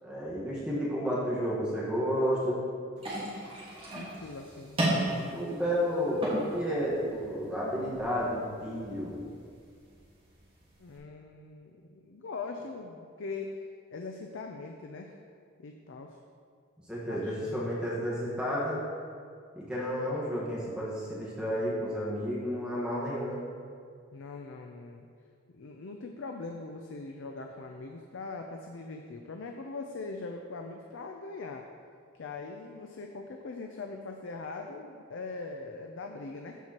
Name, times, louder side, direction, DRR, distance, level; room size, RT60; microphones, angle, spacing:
voice 1, 0.0-2.6 5.2-9.3 16.9-18.8 19.5-23.4, equal, 5° right, -7 dB, 1.3 m, -31 dB
sound 1, 3.0-11.0, right 1 dB, 25° right, 1.6 m, -36 dB
voice 2, 3.9-4.8 10.8-13.5 13.9-15.2 15.6-16.2 17.1-17.7 24.1-25.1 25.5-31.6 32.1-36.6, left 3 dB, 65° left, 3 dB, 0.4 m, -41 dB
13.5 x 4.6 x 2.9 m, 2.2 s
head